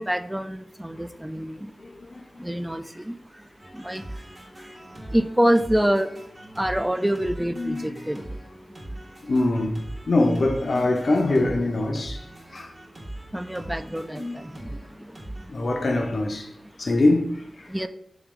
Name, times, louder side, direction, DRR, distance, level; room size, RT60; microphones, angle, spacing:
voice 1, 0.0-1.7 2.4-3.1 3.8-4.0 5.1-6.1 6.6-8.2 13.3-14.3 14.6-14.8 17.7-17.9, equal, 10° right, 0.3 m, -25 dB
voice 2, 1.8-2.4 7.4-8.0 9.2-9.8 10.1-12.3 12.5-12.7 14.1-14.4 15.5-16.5 16.8-17.9, left 2 dB, 60° left, 0.6 m, -24 dB
sound 1, 3.6-15.5, right 1 dB, 35° right, 1.2 m, -41 dB
3.3 x 3.1 x 3.6 m
cardioid pair, 55°, 0 cm